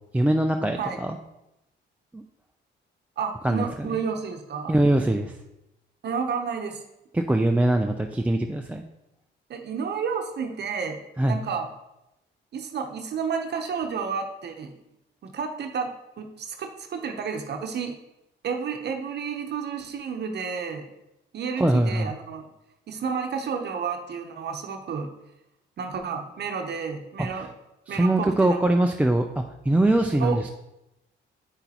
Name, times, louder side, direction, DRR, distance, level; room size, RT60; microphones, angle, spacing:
voice 1, 0.1-1.2 2.1-2.2 3.4-4.0 4.7-5.4 7.1-8.8 11.2-11.4 21.6-22.1 27.2-27.5 27.9-30.5, right 1 dB, 5° right, 3 dB, 0.4 m, -23 dB
voice 2, 3.2-4.7 6.0-6.8 9.5-11.0 11.3-11.7 12.5-14.7 15.2-18.0 18.4-20.9 21.3-22.4 22.9-25.1 25.8-27.5 27.9-28.6 30.2-30.4, right 6 dB, 55° right, 4 dB, 0.8 m, -31 dB
8.0 x 6.0 x 2.9 m, 0.89 s
cardioid pair, 90°, 20 cm